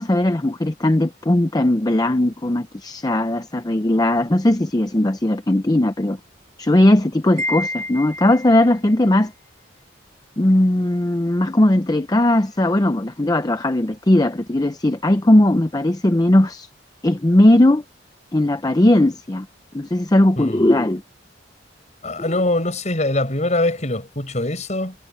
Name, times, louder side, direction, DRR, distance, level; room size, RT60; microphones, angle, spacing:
voice 1, 0.0-6.2 6.6-9.3 10.4-16.7 17.0-17.8 18.3-19.5 19.7-21.0, left 1 dB, 20° left, 0.6 m, -18 dB
Wind chime, 7.4-8.8, left 1 dB, 40° right, 1.7 m, -29 dB
voice 2, 20.4-20.7 22.0-25.0, left 1 dB, 40° left, 7.6 m, -23 dB
head